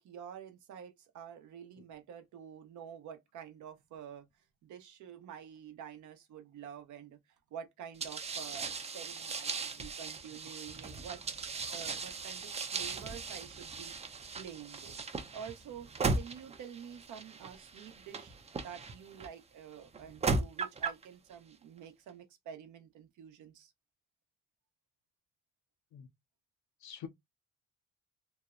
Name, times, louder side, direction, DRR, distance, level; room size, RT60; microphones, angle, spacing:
voice 1, 0.0-4.3 4.6-7.2 7.5-11.2 11.7-13.9 14.4-15.0 15.3-23.7, right 8 dB, 75° right, 0.7 m, -48 dB
voice 2, 1.8-1.9 9.8-9.9 25.9-26.1 26.8-27.1, left 8 dB, 70° left, 0.5 m, -46 dB
sound 1, 8.0-19.3 19.9-21.0, right 4 dB, 20° right, 0.4 m, -37 dB
2.7 x 2.0 x 2.3 m
cardioid pair, 90°, 30 cm